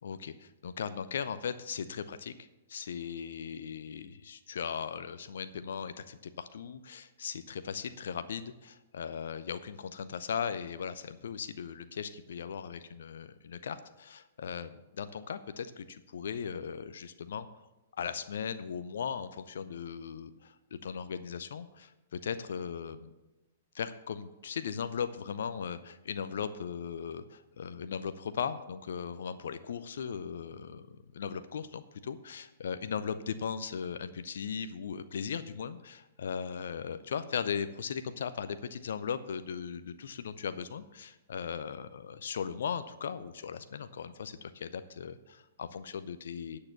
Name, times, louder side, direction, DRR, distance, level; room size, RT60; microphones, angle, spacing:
voice 1, 0.0-2.3 2.7-17.5 18.0-23.1 23.7-46.6, left 7 dB, 60° left, 12 dB, 0.5 m, -38 dB
9.8 x 6.6 x 6.9 m, 1.0 s
figure-of-eight pair, 110°, 0 cm